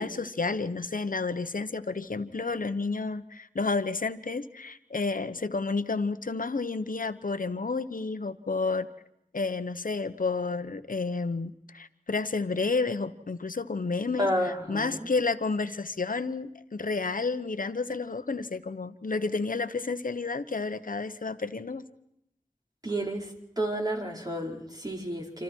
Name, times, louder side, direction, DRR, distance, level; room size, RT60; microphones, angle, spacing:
voice 1, 0.0-8.9 9.3-21.8, left 4 dB, 85° left, 11 dB, 1.1 m, -31 dB
voice 2, 14.2-15.1 22.8-23.3 23.6-25.4, equal, 30° right, 0 dB, 4.9 m, -31 dB
27.5 x 27.0 x 4.7 m, 0.77 s
wide cardioid pair, 60°, 14 cm